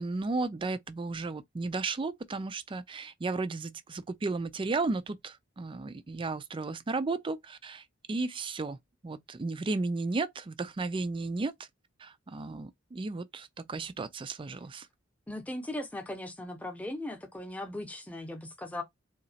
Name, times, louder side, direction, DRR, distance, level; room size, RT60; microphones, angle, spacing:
voice 1, 0.0-8.8 9.0-11.7 12.0-14.9, right 3 dB, 25° right, 0.4 m, -34 dB
voice 2, 15.3-18.8, left 1 dB, 5° left, 0.8 m, -38 dB
3.9 x 2.8 x 2.7 m
head